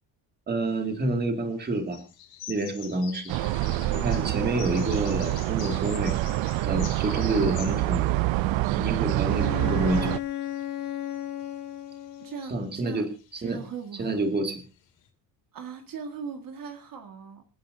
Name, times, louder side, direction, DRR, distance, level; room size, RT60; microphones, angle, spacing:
voice 1, 0.5-2.0 2.5-3.3 3.9-6.2 6.6-8.1 8.8-10.1 12.5-13.6 14.0-14.6, right 2 dB, 20° right, 5 dB, 2.2 m, -28 dB
sound 1, 0.7-1.1 1.8-8.0 8.3-15.1, left 10 dB, 80° left, 6.1 m, -47 dB
sound 2, 3.3-10.2, right 17 dB, 85° right, 0.7 m, -26 dB
Bowed string instrument, 9.2-12.7, left 12 dB, 60° left, 2.2 m, -35 dB
voice 2, 12.2-13.0 13.4-14.2 15.5-17.4, right 6 dB, 50° right, 5 dB, 1.8 m, -39 dB
27.0 x 10.0 x 2.7 m, 0.31 s
cardioid pair, 170°, 45 cm